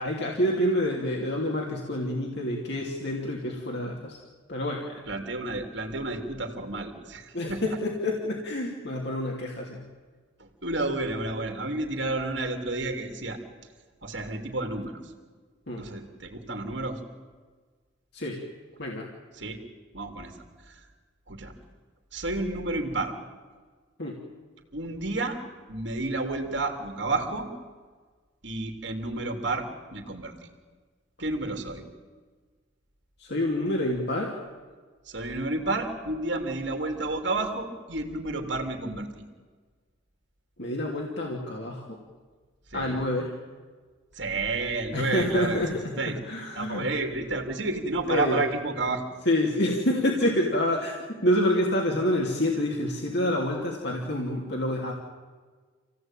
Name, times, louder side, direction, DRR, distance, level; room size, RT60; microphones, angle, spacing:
voice 1, 0.0-4.2 4.5-5.0 7.3-9.8 15.7-15.8 18.1-18.4 18.8-19.1 24.0-24.2 33.2-34.4 40.6-42.0 42.7-43.3 44.9-46.9 48.1-48.4 49.2-51.0 51.2-54.9, left 1 dB, 60° left, -1 dB, 2.9 m, -27 dB
voice 2, 5.1-7.8 10.4-13.4 14.0-15.0 15.8-17.0 19.4-19.6 19.9-20.3 20.7-20.8 21.3-21.5 22.1-23.1 24.7-25.4 25.7-27.5 28.4-30.3 31.2-31.9 35.1-39.2 42.7-43.0 44.1-45.6 46.0-46.2 46.5-49.0, right 2 dB, 60° right, 5 dB, 3.1 m, -31 dB
27.5 x 17.0 x 9.1 m, 1.5 s
head